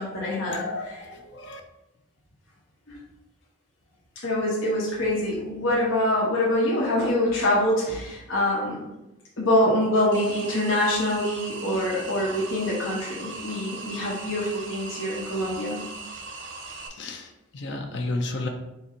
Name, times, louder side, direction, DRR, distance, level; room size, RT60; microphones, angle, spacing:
voice 1, 0.0-1.1 2.9-3.0 4.2-8.9 9.4-15.8, left 1 dB, 85° left, -5 dB, 1.0 m, -25 dB
voice 2, 0.5-1.6 16.9-18.5, left 2 dB, 60° left, 4 dB, 0.5 m, -32 dB
sound 1, 10.1-16.9, right 3 dB, 65° right, 0.6 m, -39 dB
4.0 x 2.6 x 4.2 m, 0.93 s
head